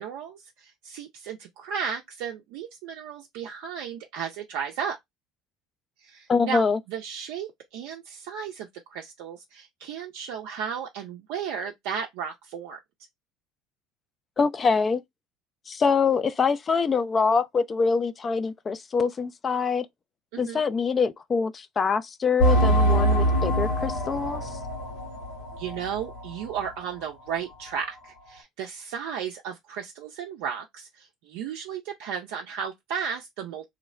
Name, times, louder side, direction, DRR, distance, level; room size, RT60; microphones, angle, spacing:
voice 1, 0.0-5.0 6.0-12.8 20.3-20.7 25.6-33.6, right 7 dB, 70° right, 0.4 m, -34 dB
voice 2, 6.3-6.8 14.4-15.0 15.7-19.9 20.4-24.4, left 5 dB, 35° left, 0.4 m, -24 dB
sound 1, 22.4-26.7 27.0-27.1 27.7-27.8, right 1 dB, 75° left, 1.7 m, -24 dB
3.1 x 2.0 x 2.3 m
hypercardioid pair, 65°, 0 cm